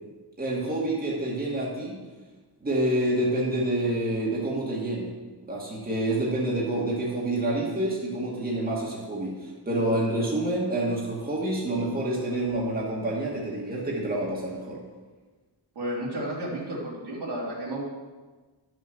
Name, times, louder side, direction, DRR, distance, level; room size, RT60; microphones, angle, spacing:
voice 1, 0.4-2.0 2.6-5.1 5.5-14.8, right 1 dB, 20° right, -5 dB, 2.0 m, -28 dB
voice 2, 15.7-17.8, right 1 dB, 75° right, -5 dB, 3.2 m, -32 dB
11.0 x 6.3 x 6.1 m, 1.3 s
wide cardioid pair, 165°, 41 cm